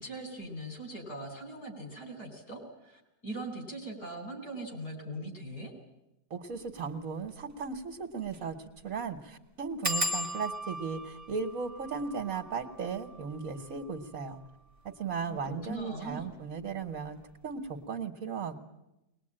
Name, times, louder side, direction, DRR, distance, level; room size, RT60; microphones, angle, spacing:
voice 1, 0.0-5.7 15.2-16.3, right 1 dB, 65° left, 3 dB, 5.1 m, -41 dB
voice 2, 6.3-8.5 8.8-14.4 14.8-17.2 17.4-18.6, right 5 dB, 55° right, 2 dB, 1.7 m, -36 dB
sound 1, 6.7-6.9 7.3-7.4 7.6-7.7 8.3-8.5 8.8-8.9 9.8-15.1 15.8-16.3 16.6-17.0 17.2-17.3, equal, 10° right, 1.2 m, -38 dB
21.5 x 20.5 x 8.8 m, 0.91 s
omnidirectional pair, 1.8 m